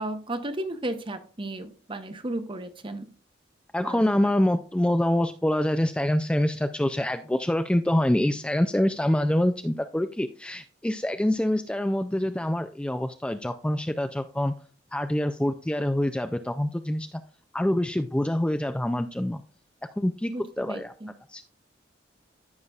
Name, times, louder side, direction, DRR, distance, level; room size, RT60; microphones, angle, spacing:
voice 1, 0.0-3.1 3.8-4.3 20.3-21.1, right 1 dB, 30° right, 9 dB, 0.8 m, -34 dB
voice 2, 3.7-14.5 14.9-17.1 17.5-19.4 20.0-20.9 21.3-21.4, left 1 dB, 5° left, 8 dB, 0.3 m, -25 dB
14.5 x 5.6 x 2.4 m, 0.40 s
head